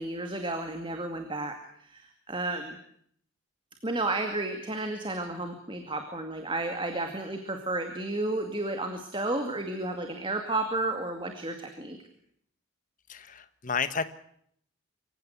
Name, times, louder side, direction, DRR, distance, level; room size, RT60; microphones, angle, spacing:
voice 1, 0.0-2.8 3.8-12.0, right 2 dB, 25° right, 6 dB, 2.2 m, -32 dB
voice 2, 13.1-14.1, left 5 dB, 40° left, 12 dB, 1.4 m, -31 dB
25.0 x 16.0 x 9.4 m, 0.67 s
head